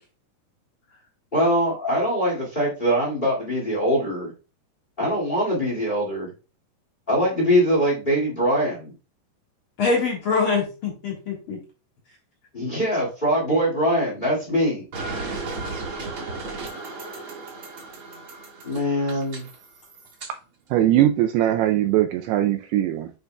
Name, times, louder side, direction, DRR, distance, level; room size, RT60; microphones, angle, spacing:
voice 1, 1.3-4.3 5.0-6.3 7.1-8.9 12.5-14.8 18.6-19.4, equal, 35° left, -3 dB, 0.7 m, -22 dB
voice 2, 9.8-11.6 15.3-15.5 19.1-19.2, left 4 dB, 75° left, -2 dB, 1.2 m, -24 dB
sound 1, 14.9-20.3, right 3 dB, 55° right, 1.5 m, -35 dB
voice 3, 20.7-23.1, right 13 dB, 90° right, 6 dB, 2.3 m, -20 dB
9.2 x 5.3 x 2.2 m, 0.33 s
omnidirectional pair, 5.2 m